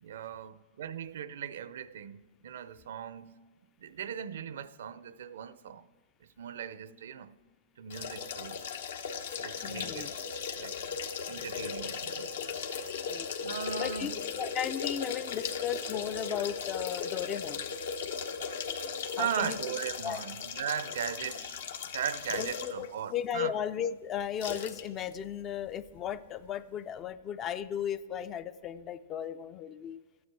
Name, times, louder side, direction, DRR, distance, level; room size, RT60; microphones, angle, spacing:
voice 1, 0.0-3.4 3.8-5.9 6.4-7.4 7.8-8.6 9.4-10.1 10.5-10.8 11.3-12.6 13.4-14.1 19.2-21.6 21.9-23.6, right 8 dB, 75° right, 0.5 m, -38 dB
sound 1, 7.9-22.9 23.3-23.4 24.4-24.8 25.1-25.2, left 6 dB, 75° left, 1.0 m, -37 dB
voice 2, 9.6-10.1 11.4-11.5 13.1-13.3 13.8-17.7 19.2-19.6 20.0-20.2 22.4-30.0, left 9 dB, 25° left, 0.3 m, -36 dB
13.0 x 9.5 x 4.7 m
hypercardioid pair, 155°, 0 cm